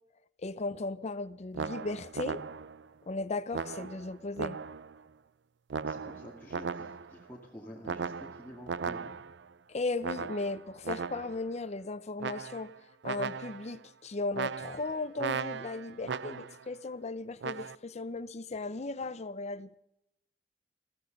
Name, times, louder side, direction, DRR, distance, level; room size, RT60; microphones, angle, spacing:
voice 1, 0.4-2.4 3.1-4.6 9.7-12.7 13.0-19.8, left 3 dB, 40° left, 0.6 m, -36 dB
sound 1, 1.5-2.9 3.5-5.0 5.7-7.2 7.9-9.5 10.0-11.5 12.2-12.8 13.0-13.8 14.3-16.7 17.4-17.8, right 5 dB, 90° right, 0.5 m, -37 dB
voice 2, 5.9-9.2, equal, 10° left, 2.3 m, -49 dB
15.5 x 14.5 x 5.3 m
head